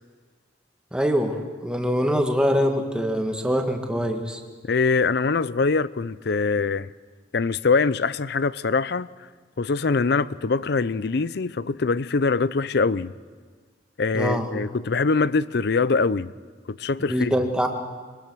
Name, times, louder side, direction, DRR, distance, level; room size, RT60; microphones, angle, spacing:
voice 1, 0.9-4.4 14.1-14.5 17.0-17.7, equal, 5° right, 1.7 m, -24 dB
voice 2, 4.6-6.9 7.3-9.1 9.6-13.1 14.0-16.3 16.7-17.3, left 4 dB, 60° left, 0.5 m, -23 dB
23.5 x 20.5 x 6.3 m
head